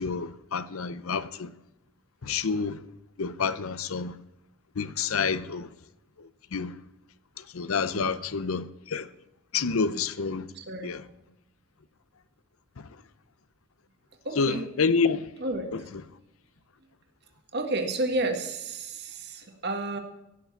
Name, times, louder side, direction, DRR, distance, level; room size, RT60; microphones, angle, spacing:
voice 1, 0.0-1.5 2.2-2.8 3.2-4.2 4.8-5.7 6.5-6.7 7.5-9.1 9.5-10.5 10.8-11.0 14.4-15.3 15.7-15.8, left 5 dB, 75° left, 0.7 m, -28 dB
voice 2, 10.5-11.0 14.2-14.7 15.4-15.7 17.5-20.0, right 2 dB, 50° right, 1.8 m, -31 dB
15.5 x 6.9 x 7.1 m
head